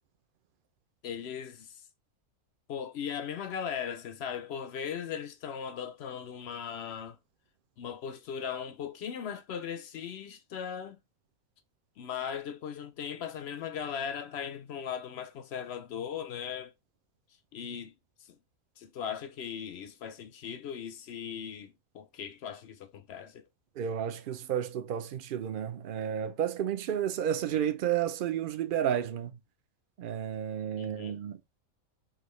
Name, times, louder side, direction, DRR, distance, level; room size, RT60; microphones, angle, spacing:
voice 1, 1.0-1.8 2.7-7.2 7.8-11.0 12.0-16.7 17.5-17.9 18.2-18.4 18.8-23.4 30.8-31.2, left 8 dB, 65° left, 0.7 m, -38 dB
voice 2, 23.8-29.3 30.0-31.6, right 9 dB, 60° right, 0.5 m, -32 dB
4.9 x 2.7 x 3.1 m
omnidirectional pair, 1.5 m